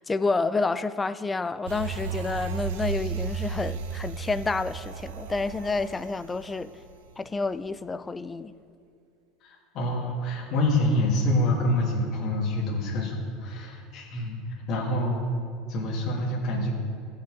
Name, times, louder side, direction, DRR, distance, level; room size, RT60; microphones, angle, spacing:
voice 1, 0.0-6.7 7.2-8.5, left 3 dB, 15° left, 14 dB, 0.3 m, -29 dB
sound 1, 1.7-7.3 7.7-7.8, right 6 dB, 85° right, 0.7 m, -34 dB
voice 2, 9.4-14.4 14.7-15.3 15.7-16.7, left 1 dB, 50° left, -5 dB, 2.3 m, -26 dB
15.5 x 5.8 x 3.7 m, 2.3 s
supercardioid pair, 125°, 0 cm